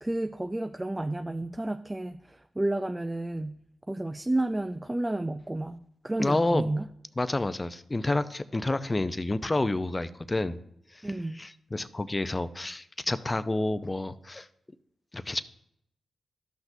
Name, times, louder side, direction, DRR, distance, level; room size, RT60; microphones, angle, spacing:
voice 1, 0.0-3.6 3.9-6.9 11.0-11.4, right 1 dB, 20° right, 8 dB, 0.4 m, -31 dB
voice 2, 6.2-6.7 7.2-10.6 10.9-11.0 11.4-14.5 15.1-15.4, left 2 dB, 25° left, 13 dB, 0.6 m, -29 dB
13.0 x 5.9 x 2.7 m, 0.74 s
supercardioid pair, 40°, 0 cm